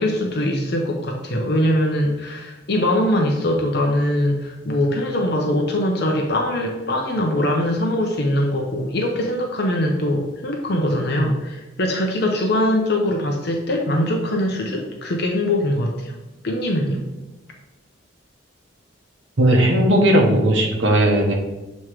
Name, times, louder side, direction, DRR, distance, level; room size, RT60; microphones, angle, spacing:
voice 1, 0.0-16.1 16.4-17.0, left 1 dB, 55° left, 1 dB, 0.7 m, -22 dB
voice 2, 19.4-21.3, right 1 dB, 65° right, 0 dB, 0.9 m, -16 dB
7.4 x 3.1 x 4.8 m, 1.1 s
head